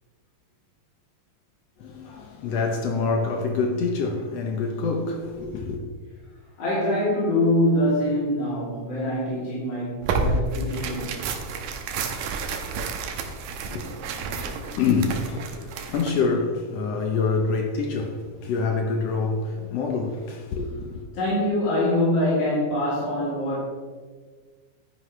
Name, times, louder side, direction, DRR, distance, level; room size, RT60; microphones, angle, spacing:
voice 1, 1.8-5.8 13.7-21.0, left 4 dB, 70° left, 1.5 m, -26 dB
voice 2, 6.6-11.3 21.1-23.6, left 1 dB, 45° left, 3.8 m, -24 dB
Tearing, 10.0-16.2, right 4 dB, 80° right, 2.6 m, -30 dB
12.0 x 9.8 x 3.2 m
omnidirectional pair, 3.9 m